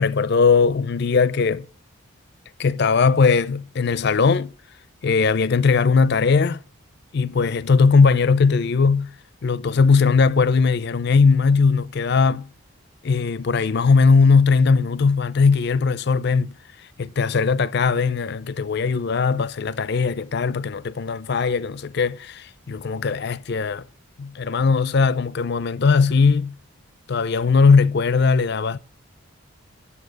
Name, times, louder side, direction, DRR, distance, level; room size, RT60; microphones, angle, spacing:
voice 1, 0.0-1.7 2.6-4.5 5.0-6.6 7.1-9.1 9.4-12.5 13.0-16.5 17.0-23.9 24.2-26.6 27.1-28.8, left 5 dB, 50° left, 0.5 m, -19 dB
10.5 x 7.0 x 6.6 m
head